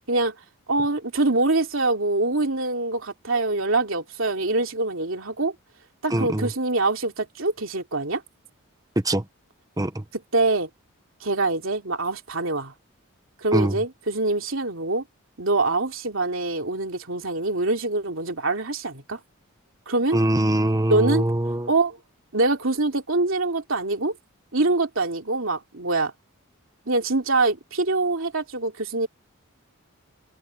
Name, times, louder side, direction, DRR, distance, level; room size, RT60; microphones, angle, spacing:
voice 1, 0.7-5.5 6.0-8.2 10.3-10.7 11.2-12.7 13.4-15.0 15.4-19.2 19.9-20.2 20.9-21.3 21.7-22.0 22.3-24.1 24.5-26.1 26.9-29.1, right 2 dB, 65° right, 3.1 m, -24 dB
voice 2, 6.1-6.5 9.0-9.2 9.8-10.0 13.5-13.8 20.1-21.7, right 1 dB, 15° right, 1.0 m, -23 dB
head